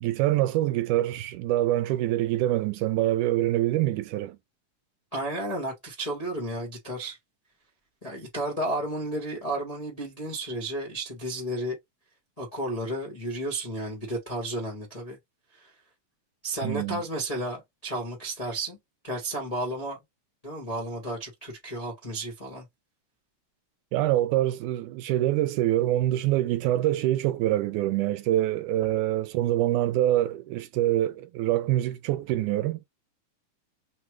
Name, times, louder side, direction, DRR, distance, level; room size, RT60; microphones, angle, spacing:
voice 1, 0.0-4.4 16.6-17.0 23.9-32.9, right 14 dB, 80° right, 2.0 m, -25 dB
voice 2, 5.1-7.2 8.0-11.8 12.4-15.2 15.5-15.7 16.4-18.8 19.0-20.0 20.4-22.6, right 1 dB, 45° left, 0.4 m, -32 dB
5.6 x 2.3 x 3.1 m
omnidirectional pair, 3.7 m